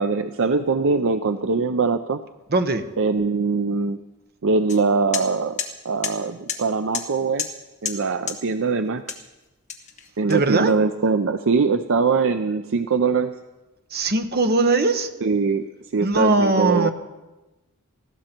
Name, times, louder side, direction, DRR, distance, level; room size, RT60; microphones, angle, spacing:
voice 1, 0.0-2.2 3.0-4.0 4.4-5.6 5.8-7.5 7.8-9.0 10.2-13.4 15.2-15.7 15.9-16.9, right 4 dB, 65° right, 9 dB, 0.6 m, -22 dB
voice 2, 2.5-2.9 10.3-10.7 13.9-15.1 16.0-16.9, right 2 dB, 50° right, 8 dB, 1.1 m, -20 dB
sound 1, 4.7-4.8 5.1-5.2 5.6-5.7 6.0-6.1 6.5-6.6 6.9-7.0 7.4-7.5 7.8-8.0 8.3-8.4 9.1-9.3 9.7-10.7, left 7 dB, 35° left, 1.5 m, -29 dB
20.0 x 15.0 x 4.5 m, 1.1 s
head